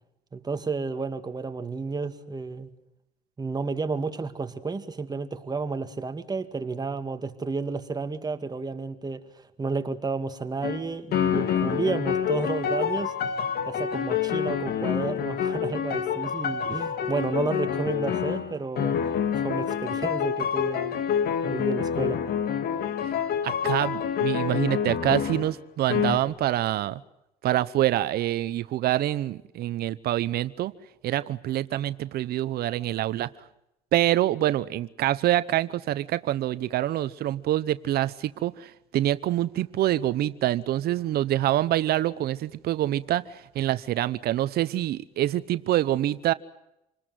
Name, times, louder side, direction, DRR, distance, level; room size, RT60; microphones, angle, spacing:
voice 1, 0.3-2.7 3.4-9.2 9.6-13.1 13.7-19.0 19.4-21.0 21.4-22.2, right 4 dB, 25° right, 8 dB, 2.2 m, -31 dB
sound 1, 10.6-10.8 11.1-25.5 25.9-26.2, left 8 dB, 65° left, 2.6 m, -27 dB
voice 2, 23.4-27.0 27.4-30.7 31.0-33.3 33.9-46.3, right 13 dB, 70° right, 15 dB, 0.9 m, -26 dB
27.5 x 20.0 x 7.7 m, 0.87 s
cardioid pair, 110°, 17 cm